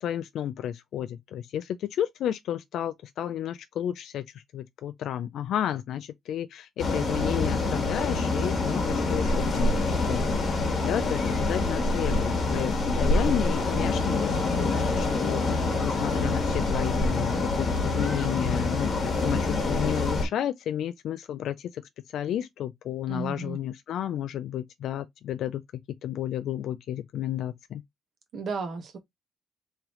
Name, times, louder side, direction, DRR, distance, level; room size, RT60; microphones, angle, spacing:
voice 1, 0.0-27.8, left 10 dB, 70° left, 0.3 m, -32 dB
sound 1, 6.8-20.2, left 3 dB, 35° left, 1.3 m, -26 dB
voice 2, 23.1-23.6 28.3-29.0, right 4 dB, 50° right, 1.0 m, -34 dB
3.6 x 3.2 x 3.0 m
cardioid pair, 165°, 0 cm